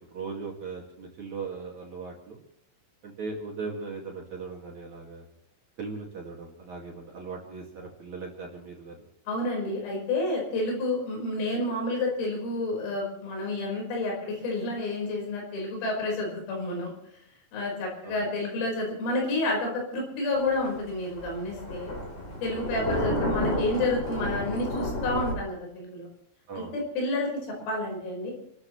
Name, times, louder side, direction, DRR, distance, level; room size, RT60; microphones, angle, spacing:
voice 1, 0.0-2.4 3.0-5.2 5.8-9.0 18.0-18.2 22.7-22.9 26.5-26.7, right 4 dB, 45° right, -2 dB, 2.8 m, -38 dB
voice 2, 9.3-16.9 17.5-21.9 22.4-26.1 26.6-27.3 27.7-28.3, left 2 dB, 85° left, -1 dB, 7.6 m, -30 dB
Thunder, 20.4-25.3, left 1 dB, 25° left, 4.0 m, -31 dB
30.0 x 13.5 x 3.2 m, 0.75 s
omnidirectional pair, 5.8 m